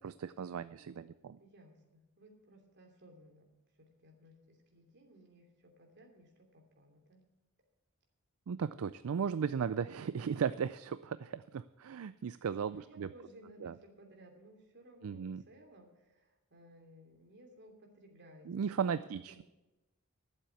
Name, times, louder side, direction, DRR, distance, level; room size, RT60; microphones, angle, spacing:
voice 1, 0.0-1.4 8.5-13.1 13.6-13.7 15.0-15.4 18.5-19.4, right 7 dB, 70° right, 15 dB, 0.4 m, -36 dB
voice 2, 1.4-3.5 3.8-7.2 12.3-18.5 18.8-19.4, right 1 dB, 55° right, 2 dB, 2.9 m, -59 dB
12.0 x 7.5 x 8.3 m, 1.0 s
head